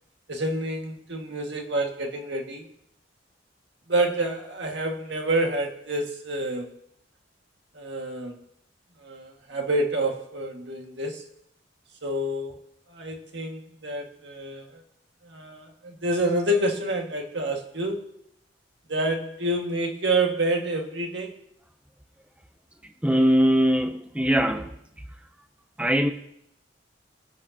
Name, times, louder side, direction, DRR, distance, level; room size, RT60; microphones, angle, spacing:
voice 1, 0.3-2.7 3.9-6.7 7.7-8.4 9.0-11.3 12.0-12.6 12.9-14.8 15.2-18.1 18.9-21.3, right 1 dB, 65° right, 2 dB, 1.9 m, -28 dB
voice 2, 22.8-24.8 25.8-26.1, equal, 5° right, 6 dB, 0.6 m, -21 dB
25.0 x 8.4 x 2.8 m, 0.76 s
head